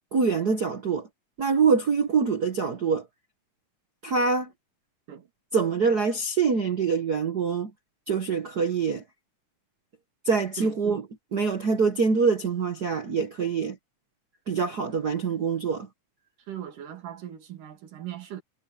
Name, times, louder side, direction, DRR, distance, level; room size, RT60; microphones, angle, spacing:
voice 1, 0.1-1.1 1.4-3.0 4.0-4.5 5.5-7.7 8.1-9.0 10.2-11.0 11.3-13.8 14.5-15.9, right 5 dB, 65° right, 0.9 m, -25 dB
voice 2, 16.5-18.4, right 11 dB, 80° right, 3.7 m, -39 dB
omnidirectional pair, 3.6 m